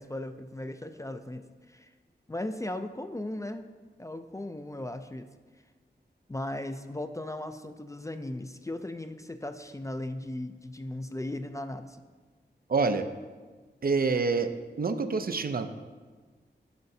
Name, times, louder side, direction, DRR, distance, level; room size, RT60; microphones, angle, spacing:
voice 1, 0.0-1.9 2.3-3.7 4.0-5.3 6.3-12.0, left 1 dB, 15° left, 9 dB, 0.4 m, -37 dB
voice 2, 12.7-13.1 13.8-14.5 14.8-15.7, right 4 dB, 55° right, 9 dB, 0.5 m, -26 dB
9.4 x 5.6 x 2.7 m, 1.4 s
cardioid pair, 55°, 19 cm